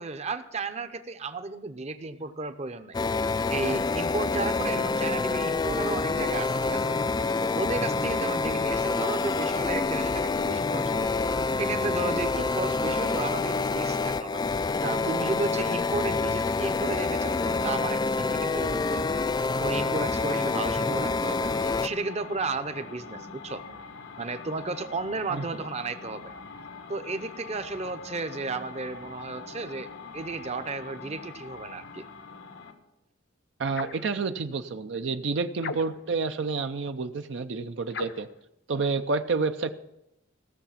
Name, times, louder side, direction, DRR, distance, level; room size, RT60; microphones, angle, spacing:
voice 1, 0.0-3.0 3.5-7.0 7.4-11.1 11.6-14.4 14.8-19.1 19.6-23.6 24.2-26.3 26.9-29.9 30.1-32.1, right 3 dB, 35° right, 10 dB, 0.7 m, -33 dB
sound 1, 2.9-21.9, left 3 dB, 20° left, 0.3 m, -27 dB
sound 2, 21.4-32.8, left 4 dB, 90° left, 1.2 m, -44 dB
voice 2, 33.6-38.3 38.7-39.7, right 4 dB, 70° right, 8 dB, 0.5 m, -29 dB
sound 3, 33.7-34.1 35.6-36.2 37.9-38.3, left 4 dB, 60° left, 0.6 m, -37 dB
16.0 x 6.8 x 5.8 m, 0.87 s
head